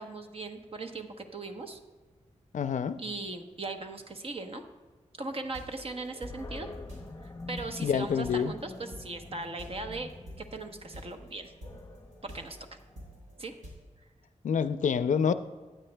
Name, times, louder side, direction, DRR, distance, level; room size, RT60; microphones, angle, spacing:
voice 1, 0.0-1.8 3.0-4.6 5.2-6.7 7.2-10.1 10.4-11.5 12.2-12.6 13.4-13.5, right 3 dB, 50° right, 6 dB, 0.9 m, -39 dB
voice 2, 2.5-3.0 7.8-8.5 14.4-15.3, left 7 dB, 75° left, 12 dB, 0.4 m, -27 dB
sound 1, 5.4-13.7, equal, 75° right, 3.1 m, -49 dB
Animal, 6.2-13.3, left 2 dB, 25° left, 0.6 m, -46 dB
14.5 x 9.0 x 2.2 m, 1.3 s
wide cardioid pair, 90°, 13 cm